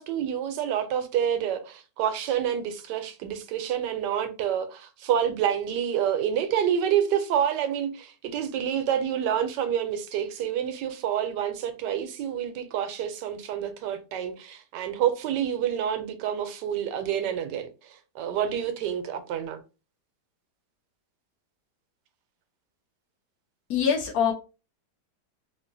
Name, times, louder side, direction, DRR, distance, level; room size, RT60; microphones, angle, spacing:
voice 1, 0.0-17.7 18.1-19.6, right 9 dB, 80° right, 1.2 m, -28 dB
voice 2, 23.7-24.3, left 7 dB, 70° left, 0.9 m, -23 dB
3.6 x 2.4 x 2.6 m
omnidirectional pair, 1.9 m